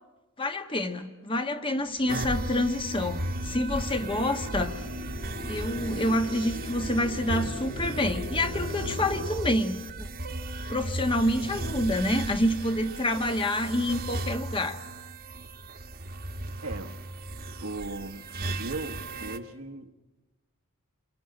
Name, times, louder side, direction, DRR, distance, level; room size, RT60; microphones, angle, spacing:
voice 1, 0.4-4.7 5.5-10.1 10.7-14.8, left 1 dB, 25° left, 7 dB, 1.3 m, -27 dB
sound 1, 1.6-9.3, left 1 dB, 45° left, 5.5 m, -39 dB
sound 2, 2.1-19.4, right 2 dB, 45° right, 1.4 m, -36 dB
voice 2, 16.6-17.0 17.6-18.3 18.6-19.9, right 2 dB, 70° right, 6 dB, 1.4 m, -37 dB
28.0 x 23.0 x 8.9 m, 1.1 s
head